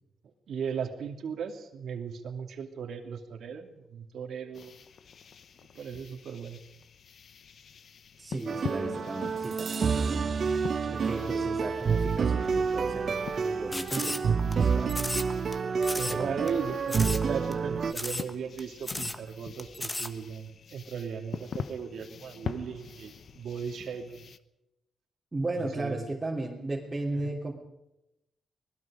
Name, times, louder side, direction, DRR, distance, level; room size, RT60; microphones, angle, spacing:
voice 1, 0.2-4.8 5.7-6.6 15.9-24.3 25.6-26.0 27.1-27.3, right 6 dB, 70° right, 4 dB, 2.7 m, -37 dB
sound 1, 4.5-24.4, left 6 dB, 55° left, 0.9 m, -45 dB
voice 2, 8.2-15.0 16.1-16.5 25.3-27.5, right 2 dB, 15° right, -5 dB, 3.2 m, -36 dB
sound 2, 8.5-17.9, right 5 dB, 45° right, 1.1 m, -28 dB
sound 3, 13.7-14.5 14.9-15.5 15.8-16.2 16.5-16.6 16.9-17.3 17.5-17.6 17.9-18.3 18.6-18.7 18.8-19.2 19.6-20.1, left 1 dB, 15° left, 1.4 m, -34 dB
25.5 x 20.0 x 5.1 m, 0.87 s
wide cardioid pair, 145°, 0 cm